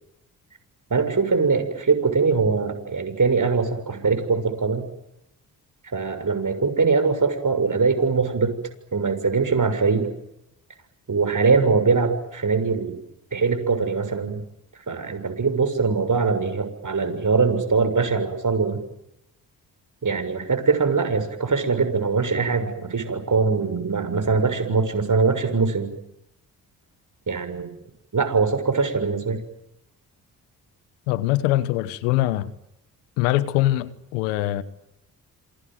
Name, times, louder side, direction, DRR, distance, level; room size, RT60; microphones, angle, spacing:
voice 1, 0.9-4.8 5.9-8.5 8.9-10.1 11.1-13.0 13.3-14.4 14.9-18.8 20.0-25.9 27.3-27.7 28.1-29.4, right 4 dB, 45° right, 6.8 m, -22 dB
voice 2, 31.1-32.5 33.2-34.6, left 16 dB, 90° left, 1.2 m, -23 dB
27.5 x 23.0 x 9.3 m
hypercardioid pair, 40°, 44 cm